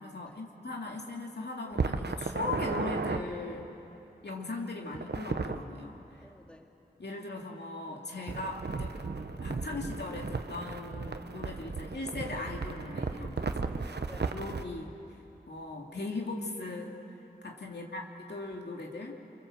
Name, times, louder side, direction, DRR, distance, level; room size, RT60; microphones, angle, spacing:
voice 1, 0.0-3.7 4.2-6.2 7.0-9.0 9.4-13.5 14.3-14.9 15.5-17.0 17.4-19.1, left 2 dB, 90° left, 0 dB, 2.5 m, -39 dB
sound 1, 1.7-3.2 4.9-5.6 8.3-14.7, right 4 dB, 90° right, 1.0 m, -35 dB
voice 2, 6.2-6.8 13.4-14.5 17.6-18.2, left 1 dB, 5° left, 2 dB, 2.2 m, -53 dB
27.5 x 25.0 x 7.6 m, 2.9 s
wide cardioid pair, 55°, 17 cm